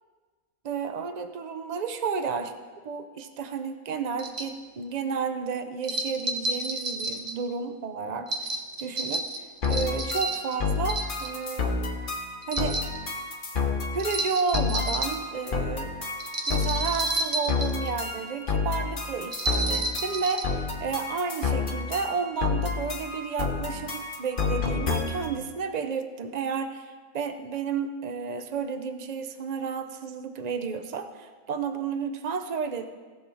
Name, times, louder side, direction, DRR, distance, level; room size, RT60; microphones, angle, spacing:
voice 1, 0.6-2.5 2.8-9.3 9.7-11.7 12.5-12.8 13.9-15.9 16.5-32.9, right 5 dB, 75° right, 8 dB, 0.3 m, -32 dB
sound 1, 4.2-4.5 5.8-7.3 8.3-10.6 10.9-11.5 12.4-13.0 14.0-15.2 16.2-17.9 19.3-20.5, right 2 dB, 35° right, 0.8 m, -30 dB
sound 2, 9.6-25.4, left 5 dB, 40° left, 1.1 m, -30 dB
17.5 x 6.3 x 3.8 m, 1.4 s
omnidirectional pair, 1.6 m